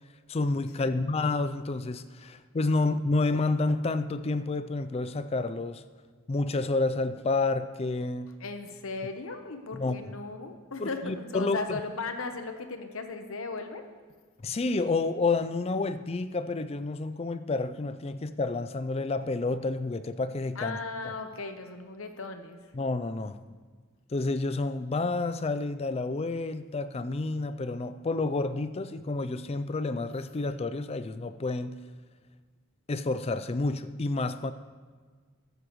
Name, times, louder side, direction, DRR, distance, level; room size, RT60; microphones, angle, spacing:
voice 1, 0.3-5.8 6.3-8.3 9.7-10.0 10.8-11.8 14.4-20.8 21.0-21.1 22.7-23.6 24.1-31.8 32.9-34.5, left 3 dB, 30° left, 12 dB, 0.4 m, -29 dB
voice 2, 8.4-13.8 20.6-22.6, left 3 dB, 65° left, 7 dB, 1.0 m, -37 dB
14.5 x 12.0 x 3.1 m, 1.5 s
head